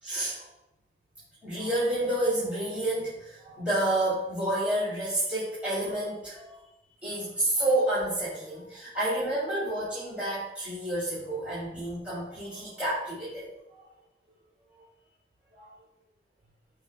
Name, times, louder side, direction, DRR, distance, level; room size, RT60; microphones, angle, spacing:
voice 1, 0.0-0.5 1.4-6.6 7.0-13.5 15.6-15.7, right 1 dB, 5° right, -11 dB, 2.8 m, -29 dB
14.5 x 5.1 x 2.2 m, 0.93 s
head